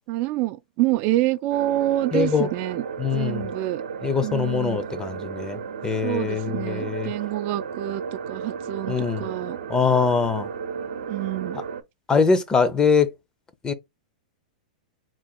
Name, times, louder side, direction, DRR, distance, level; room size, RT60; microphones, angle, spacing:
voice 1, 0.1-2.8 3.1-3.8 4.2-4.9 6.0-9.6 11.1-11.6, right 15 dB, 45° right, 0.3 m, -27 dB
sound 1, 1.5-11.8, right 6 dB, 85° right, 0.7 m, -34 dB
voice 2, 2.1-2.5 3.0-3.4 4.0-7.1 8.9-9.3 9.7-10.5 11.5-11.6 12.1-13.1 13.6-13.7, left 5 dB, 15° left, 0.6 m, -23 dB
3.8 x 2.2 x 4.1 m
hypercardioid pair, 120°, 4 cm